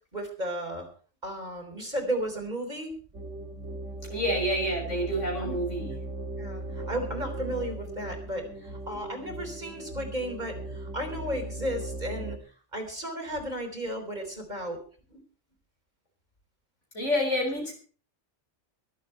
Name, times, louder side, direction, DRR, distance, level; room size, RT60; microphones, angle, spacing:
voice 1, 0.1-0.9 1.2-2.9 5.4-5.5 5.8-6.0 6.4-12.4 12.7-14.8 15.1-15.2, right 1 dB, 35° right, 2 dB, 3.9 m, -34 dB
sound 1, 3.1-12.4, right 2 dB, 80° right, 2.0 m, -38 dB
voice 2, 4.1-6.0 16.9-17.7, equal, 85° left, 0 dB, 6.9 m, -28 dB
23.5 x 8.5 x 4.5 m, 0.40 s
omnidirectional pair, 1.2 m